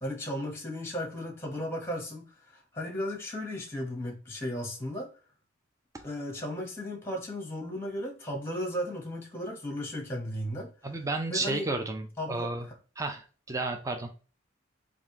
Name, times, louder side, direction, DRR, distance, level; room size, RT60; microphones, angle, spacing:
voice 1, 0.0-5.1 6.0-10.7 11.3-11.7 12.2-12.7, left 1 dB, 10° left, 1 dB, 1.0 m, -35 dB
voice 2, 10.8-12.7 13.0-13.2 13.5-14.1, right 2 dB, 15° right, 4 dB, 0.5 m, -32 dB
3.5 x 2.5 x 3.5 m, 0.37 s
head